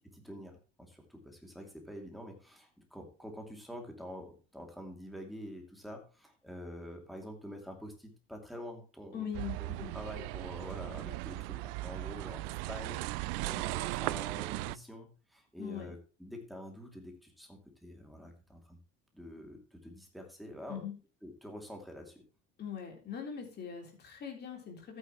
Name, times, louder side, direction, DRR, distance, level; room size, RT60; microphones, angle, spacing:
voice 1, 0.1-9.3 9.9-18.8 19.1-20.8 21.2-22.2, equal, ahead, 2 dB, 2.6 m, -47 dB
voice 2, 9.1-9.9 15.6-15.9 20.7-20.9 22.6-25.0, left 7 dB, 35° left, 2 dB, 3.7 m, -41 dB
sound 1, 9.3-14.8, right 20 dB, 80° right, 0.5 m, -37 dB
13.0 x 9.3 x 3.0 m, 0.35 s
cardioid pair, 145°, 29 cm